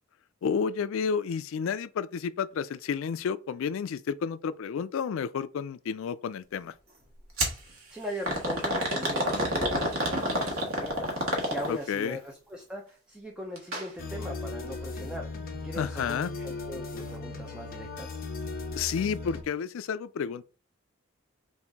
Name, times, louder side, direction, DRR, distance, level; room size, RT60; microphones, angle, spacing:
voice 1, 0.4-6.7 11.7-12.2 15.7-16.3 18.7-20.4, left 6 dB, 65° left, 0.3 m, -31 dB
sound 1, 7.4-7.6 8.3-11.9 13.6-13.9 14.2-14.3 15.2-15.3, equal, 70° right, 1.4 m, -28 dB
voice 2, 7.9-15.3 15.6-18.2, equal, 5° right, 0.6 m, -40 dB
sound 2, 14.0-19.4, left 3 dB, 45° left, 0.8 m, -37 dB
5.4 x 2.5 x 3.5 m
head